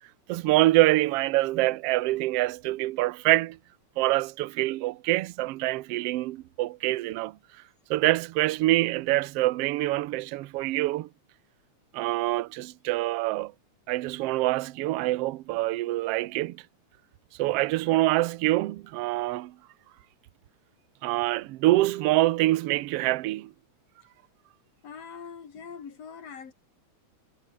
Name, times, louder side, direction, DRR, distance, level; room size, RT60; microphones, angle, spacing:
voice 1, 0.3-3.6 4.0-7.4 7.9-11.1 11.9-13.5 13.9-16.6 17.4-19.5 21.0-23.5, right 18 dB, 75° right, 1.4 m, -25 dB
voice 2, 24.8-26.5, left 6 dB, 55° left, 3.6 m, -43 dB
omnidirectional pair, 3.6 m